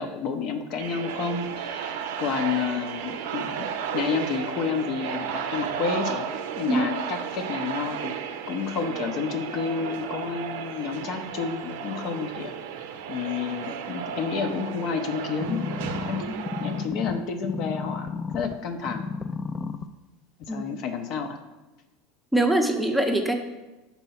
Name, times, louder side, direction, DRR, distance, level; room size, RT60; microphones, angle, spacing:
voice 1, 0.0-6.3 6.6-8.1 8.5-12.5 13.1-15.6 16.1-16.3 16.6-19.1 20.4-21.4, left 5 dB, 55° left, 6 dB, 0.6 m, -30 dB
sound 1, 0.8-16.9, right 7 dB, 75° right, 0.5 m, -33 dB
sound 2, 15.4-18.5 18.9-19.9 20.4-20.5, left 5 dB, 25° left, 0.3 m, -32 dB
voice 2, 22.3-23.3, right 1 dB, ahead, 3 dB, 0.6 m, -23 dB
4.5 x 4.2 x 5.7 m, 1.1 s
supercardioid pair, 110°, 0 cm